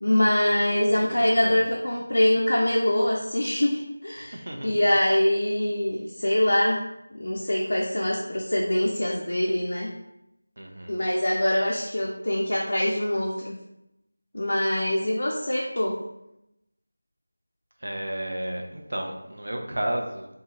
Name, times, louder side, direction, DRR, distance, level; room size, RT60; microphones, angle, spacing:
voice 1, 0.0-6.8 7.1-9.9 10.9-13.6 14.3-16.0, left 1 dB, 65° left, -3 dB, 0.4 m, -24 dB
voice 2, 0.9-1.6 4.2-4.7 10.6-11.0 17.8-20.3, right 1 dB, 60° right, 2 dB, 0.5 m, -33 dB
2.8 x 2.2 x 2.9 m, 0.88 s
figure-of-eight pair, 170°, 0 cm